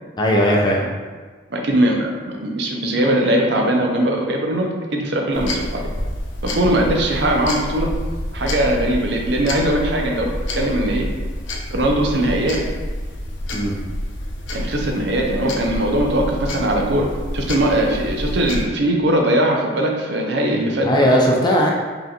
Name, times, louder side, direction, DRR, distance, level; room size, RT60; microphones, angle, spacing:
voice 1, 0.2-0.8 13.5-13.7 20.8-21.7, equal, 25° left, -1 dB, 0.4 m, -17 dB
voice 2, 1.5-5.8 6.4-7.9 8.3-11.1 11.7-12.6 14.5-17.1 17.3-21.0, right 1 dB, 70° right, 1 dB, 0.6 m, -20 dB
sound 1, 5.3-18.6, left 1 dB, 90° left, 0.5 m, -28 dB
5.4 x 2.5 x 2.9 m, 1.4 s
head